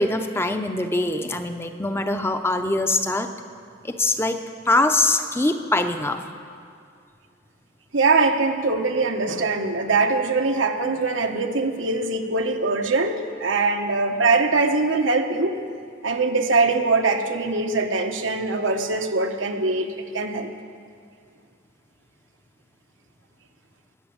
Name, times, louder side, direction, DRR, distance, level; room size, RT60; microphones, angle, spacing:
voice 1, 0.0-3.3 3.8-4.4 4.7-6.2, left 2 dB, 15° left, 7 dB, 0.7 m, -23 dB
voice 2, 7.9-15.6 16.0-20.5, right 3 dB, 90° right, 4 dB, 1.2 m, -22 dB
19.5 x 7.0 x 8.7 m, 2.3 s
head